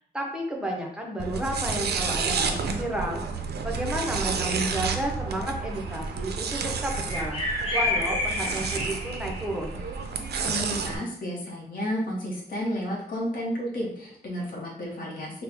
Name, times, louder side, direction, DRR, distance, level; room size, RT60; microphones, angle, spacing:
voice 1, 0.1-3.2 3.6-7.4 7.7-9.8, right 1 dB, 5° right, -1 dB, 0.5 m, -32 dB
sound 1, 1.2-11.0, right 5 dB, 90° right, 0.4 m, -30 dB
sound 2, 5.7-5.9 7.0-9.7, left 2 dB, 35° left, 1.0 m, -29 dB
voice 2, 10.4-15.4, equal, 60° left, -3 dB, 0.8 m, -32 dB
4.1 x 2.0 x 3.4 m, 0.71 s
wide cardioid pair, 180°, 16 cm